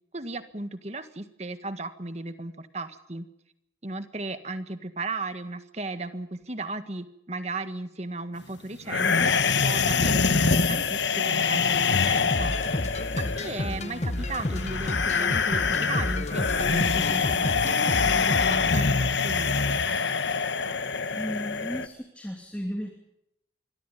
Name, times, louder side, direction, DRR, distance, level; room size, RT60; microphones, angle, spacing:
voice 1, 0.1-3.3 3.8-12.5 13.2-19.6, right 2 dB, 35° right, 10 dB, 1.7 m, -36 dB
sound 1, 8.9-21.9, left 5 dB, 75° left, 1.4 m, -25 dB
sound 2, 12.1-18.9, left 1 dB, 35° left, 1.1 m, -31 dB
voice 2, 21.2-22.9, equal, 5° left, 2 dB, 2.8 m, -34 dB
26.5 x 22.5 x 5.4 m, 0.81 s
head